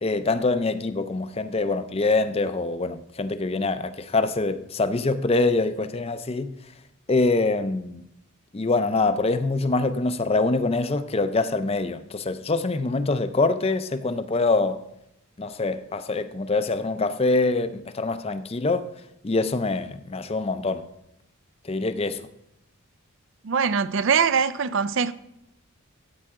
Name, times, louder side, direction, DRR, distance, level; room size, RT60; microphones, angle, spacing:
voice 1, 0.0-6.5 7.1-8.0 8.5-14.8 15.4-18.9 19.2-20.9 21.6-22.2, left 3 dB, 25° left, 0.5 m, -24 dB
voice 2, 23.4-25.1, right 6 dB, 55° right, 0.4 m, -22 dB
13.5 x 8.7 x 3.6 m
head